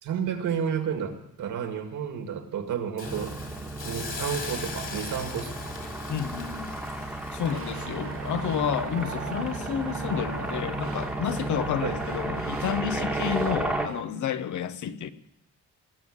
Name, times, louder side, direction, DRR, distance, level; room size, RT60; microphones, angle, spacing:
voice 1, 0.0-5.5 11.8-12.0, right 7 dB, 75° right, 5 dB, 2.1 m, -31 dB
Hiss, 3.0-10.0 10.4-10.6, left 4 dB, 40° left, 2.7 m, -41 dB
sound 1, 3.0-13.9, right 2 dB, 5° right, 1.3 m, -33 dB
voice 2, 6.1-6.8 7.3-15.1, left 8 dB, 70° left, 12 dB, 0.9 m, -30 dB
sound 2, 7.4-14.0, right 8 dB, 45° right, 0.8 m, -40 dB
19.0 x 7.3 x 8.7 m, 0.82 s
cardioid pair, 160°, 31 cm